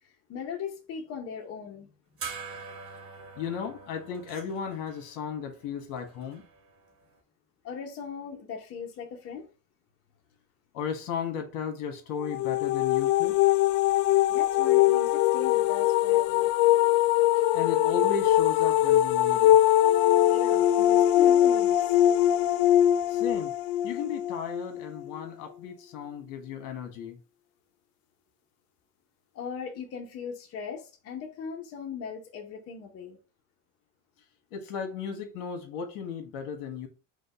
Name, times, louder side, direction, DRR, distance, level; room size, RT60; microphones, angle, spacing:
voice 1, 0.0-1.9 7.6-9.5 14.3-16.5 17.3-17.4 20.3-22.0 29.3-33.2, left 6 dB, 45° left, 0.8 m, -39 dB
sound 1, 2.2-7.0, right 5 dB, 40° right, 1.2 m, -44 dB
voice 2, 3.3-6.4 10.7-13.4 17.5-19.6 23.1-23.5 23.8-27.2 34.5-36.9, left 6 dB, 65° left, 1.4 m, -35 dB
sound 2, 12.2-25.1, left 13 dB, 80° left, 0.5 m, -22 dB
5.1 x 2.2 x 4.8 m
cardioid pair, 160°, 34 cm